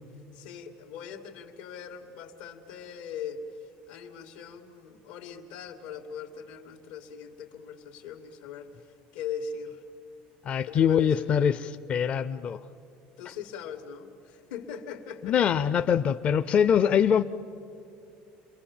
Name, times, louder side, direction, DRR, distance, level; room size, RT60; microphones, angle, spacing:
voice 1, 0.3-8.7 9.1-9.8 10.7-11.3 13.2-15.5, left 6 dB, 90° left, 6 dB, 2.0 m, -40 dB
voice 2, 10.4-11.6 11.9-12.6 15.2-17.2, left 8 dB, 35° left, 10 dB, 0.5 m, -23 dB
28.5 x 22.5 x 7.2 m, 2.6 s
cardioid pair, 145°, 4 cm